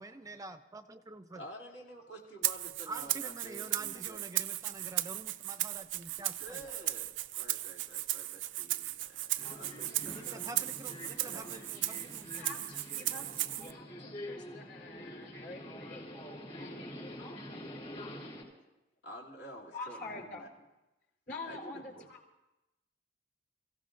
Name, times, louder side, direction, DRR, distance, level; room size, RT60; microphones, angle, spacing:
voice 1, 0.0-1.4 2.9-6.7 10.1-12.7, right 2 dB, 20° right, 8 dB, 0.5 m, -47 dB
voice 2, 1.3-4.3 6.4-10.4 10.9-11.4 19.0-20.5 21.4-22.1, right 1 dB, 75° left, -3 dB, 2.7 m, -50 dB
Rattle (instrument), 2.4-13.7, right 15 dB, 85° right, 0.4 m, -36 dB
Subway metro underground, 9.4-18.4, left 1 dB, 40° left, 5.1 m, -46 dB
voice 3, 12.3-13.3 13.5-17.4 19.7-20.5 21.3-22.2, left 3 dB, 55° left, 0 dB, 4.3 m, -46 dB
29.0 x 16.5 x 2.6 m, 0.97 s
head